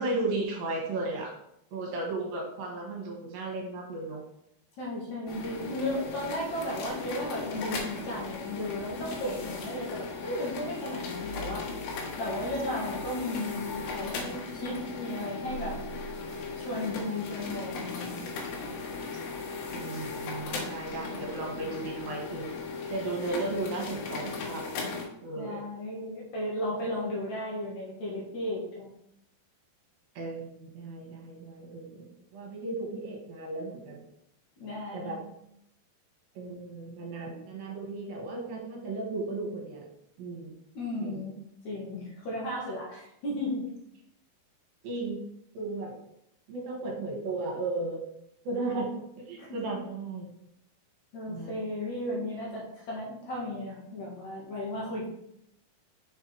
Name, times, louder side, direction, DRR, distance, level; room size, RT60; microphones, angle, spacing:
voice 1, 0.0-1.3 1.7-4.2 5.7-5.8 19.1-19.2 19.7-22.5 22.9-24.7 25.2-25.6 30.2-34.0 34.9-35.2 36.4-39.9 40.2-40.5 41.0-41.2 44.8-45.2 45.5-45.9 46.5-48.1 48.4-50.3 51.3-51.6, right 2 dB, 70° right, 0 dB, 3.0 m, -35 dB
voice 2, 4.8-11.8 12.2-15.8 16.6-18.5 25.4-28.9 34.6-35.3 40.7-41.4 41.6-43.7 49.4-49.6 51.1-55.1, left 1 dB, 60° left, -4 dB, 2.6 m, -35 dB
sound 1, 5.3-25.0, left 4 dB, 80° left, 3.1 m, -37 dB
6.5 x 4.5 x 4.6 m, 0.78 s
omnidirectional pair, 4.4 m